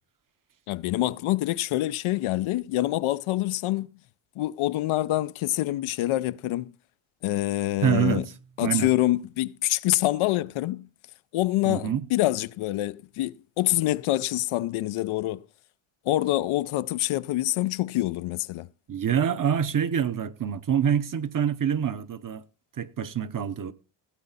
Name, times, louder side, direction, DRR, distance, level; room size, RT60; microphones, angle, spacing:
voice 1, 0.7-3.9 4.4-6.7 7.2-8.2 8.6-10.9 11.3-15.4 16.1-18.7, left 16 dB, 80° left, 0.6 m, -26 dB
voice 2, 7.8-8.2 8.6-8.9 11.6-12.1 18.9-22.4 22.8-23.7, right 8 dB, 40° right, 1.0 m, -26 dB
16.5 x 8.7 x 4.0 m
cardioid pair, 85°, 49 cm